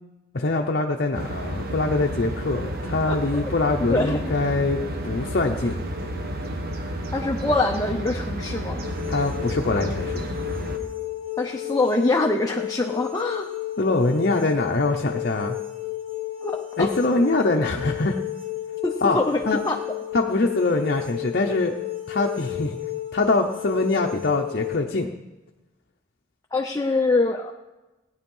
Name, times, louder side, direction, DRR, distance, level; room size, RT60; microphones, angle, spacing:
voice 1, 0.3-5.8 9.1-10.3 13.8-15.6 16.8-18.2 19.0-19.2 19.5-19.6 20.1-21.7 22.1-22.8 23.1-25.1, left 2 dB, 50° left, 2 dB, 0.8 m, -23 dB
sound 1, 1.1-10.8, right 1 dB, 50° right, 1.3 m, -31 dB
voice 2, 3.1-3.4 3.8-4.2 7.1-8.9 11.4-13.5 16.4-16.9 18.8-19.8 26.5-27.5, left 2 dB, 15° left, 1 dB, 0.7 m, -24 dB
sound 2, 8.8-24.8, left 15 dB, 30° right, 1.9 m, -32 dB
17.5 x 9.6 x 5.5 m, 1.1 s
head